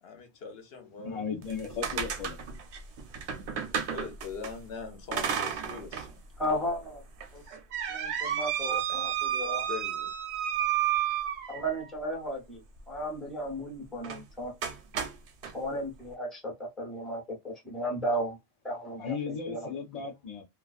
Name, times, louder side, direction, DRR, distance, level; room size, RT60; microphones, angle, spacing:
voice 1, 0.0-1.2 3.9-6.2 7.4-7.6 8.7-9.0 9.7-10.1, left 5 dB, 65° left, 0.9 m, -42 dB
voice 2, 1.0-2.4 19.0-20.4, left 6 dB, 50° left, 0.5 m, -36 dB
sound 1, 1.4-4.5 5.1-6.1 6.5-6.6 7.2-11.9 14.0-14.2 14.6-15.5, right 9 dB, 85° right, 0.9 m, -32 dB
voice 3, 6.4-7.0 7.3-7.4 7.9-9.7 11.5-14.5 15.5-18.4 18.6-19.7, equal, ahead, 0.7 m, -34 dB
2.3 x 2.3 x 2.3 m
omnidirectional pair, 1.1 m